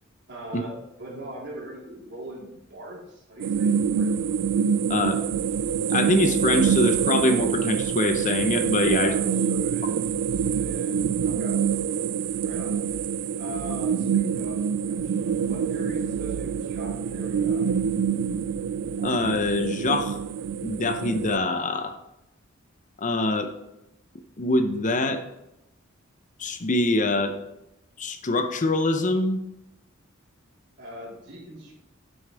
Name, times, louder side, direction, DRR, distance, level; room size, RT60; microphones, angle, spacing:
voice 1, 0.3-4.1 8.8-10.0 10.5-11.6 12.4-12.8 13.4-15.1 15.5-17.7 30.8-31.7, right 1 dB, 55° right, -5 dB, 3.9 m, -40 dB
sound 1, 3.4-21.4, right 7 dB, 75° right, 0.3 m, -26 dB
voice 2, 5.9-9.1 19.0-20.2 20.6-21.9 23.0-23.5 24.4-25.2 26.4-27.4 28.0-29.4, left 2 dB, 35° left, 8 dB, 0.7 m, -24 dB
10.0 x 7.8 x 3.5 m, 0.90 s
head